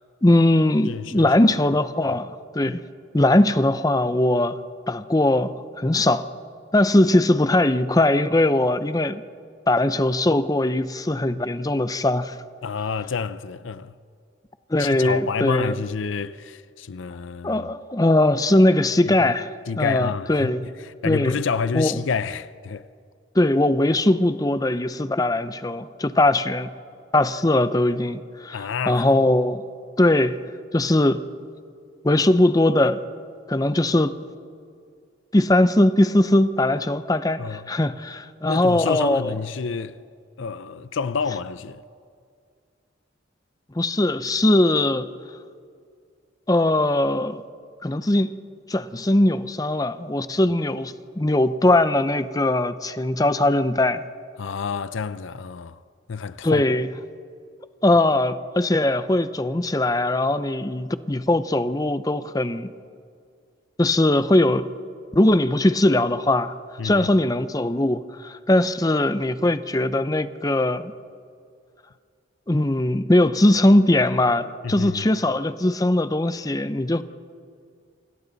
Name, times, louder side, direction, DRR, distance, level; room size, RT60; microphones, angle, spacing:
voice 1, 0.2-2.8 3.1-4.6 4.9-6.2 6.7-9.2 9.7-12.3 14.7-15.7 17.4-19.5 19.8-20.7 21.0-21.4 21.7-22.0 23.3-26.7 27.1-29.6 30.0-30.4 30.7-31.2 32.0-33.0 33.5-34.2 35.3-39.3 43.8-45.1 46.5-47.4 47.8-48.3 48.7-54.0 56.4-56.9 57.8-62.7 63.8-64.7 65.1-66.5 66.8-70.9 72.5-77.0, left 1 dB, 20° left, 0.6 m, -20 dB
voice 2, 0.8-1.4 2.1-2.2 2.6-2.8 12.6-13.9 14.8-17.7 19.1-19.3 19.7-22.9 28.5-29.1 37.4-37.7 38.4-40.0 40.4-41.8 54.4-55.8 56.1-56.6 66.8-67.1 74.6-75.0, left 5 dB, 85° left, 0.6 m, -29 dB
28.5 x 26.5 x 4.1 m
head